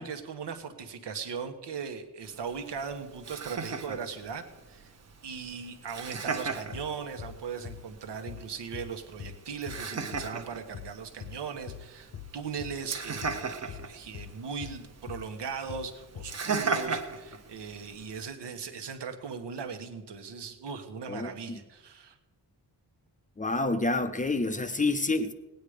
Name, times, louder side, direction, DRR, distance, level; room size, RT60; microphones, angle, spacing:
voice 1, 0.0-4.9 5.2-22.2, right 6 dB, 80° right, 7 dB, 1.3 m, -39 dB
Laughter, 2.3-18.3, right 5 dB, 40° right, 0.9 m, -38 dB
sound 1, 6.7-6.9 7.2-7.4 7.6-7.8 8.3-8.5 8.7-8.9 9.2-9.4 9.7-9.9 10.1-10.3 10.7-10.9 11.2-11.4 11.7-11.9 12.1-12.3 12.6-12.8 13.2-13.4 13.7-13.9 14.1-14.3 14.6-14.8 15.1-15.3 15.7-15.9 16.2-16.4, left 9 dB, 80° left, 1.0 m, -43 dB
voice 2, 21.1-21.6 23.4-25.3, left 2 dB, 20° left, 9 dB, 0.5 m, -28 dB
18.0 x 9.3 x 5.0 m, 1.1 s
wide cardioid pair, 165°, 41 cm